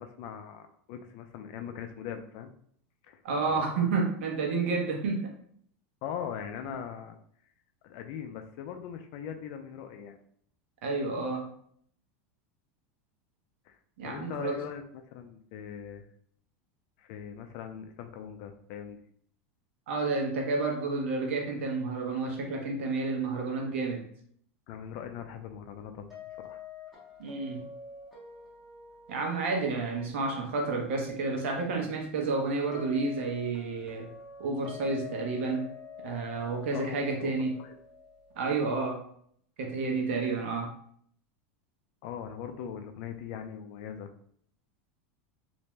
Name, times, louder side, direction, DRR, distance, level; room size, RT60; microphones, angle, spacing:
voice 1, 0.0-2.5 3.0-3.2 3.5-3.7 6.0-7.2 7.8-10.2 13.7-13.8 14.0-16.0 17.0-19.0 24.7-26.1 26.4-26.6 36.7-37.8 42.0-44.1, left 8 dB, 45° left, 6 dB, 0.4 m, -40 dB
voice 2, 3.2-5.3 10.8-11.5 14.0-14.6 19.9-24.1 27.2-27.6 29.1-34.1 34.4-35.7 36.0-37.6 38.4-39.0 39.6-40.7, right 3 dB, 85° right, 1 dB, 0.8 m, -30 dB
sound 1, 26.1-39.0, left 5 dB, ahead, 0.8 m, -48 dB
2.5 x 2.1 x 3.0 m, 0.63 s
supercardioid pair, 165°, 7 cm